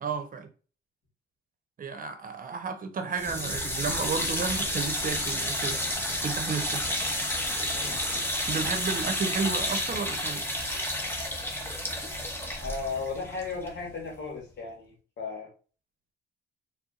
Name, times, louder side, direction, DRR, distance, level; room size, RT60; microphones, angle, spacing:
voice 1, 0.0-0.5 1.8-5.8 6.2-6.8 8.5-10.4, right 5 dB, 45° right, 0.9 m, -32 dB
sound 1, 3.1-14.2, left 1 dB, 10° left, 1.4 m, -31 dB
voice 2, 12.6-15.5, left 4 dB, 60° left, 2.2 m, -35 dB
4.4 x 3.6 x 2.5 m
cardioid pair, 90°, 20 cm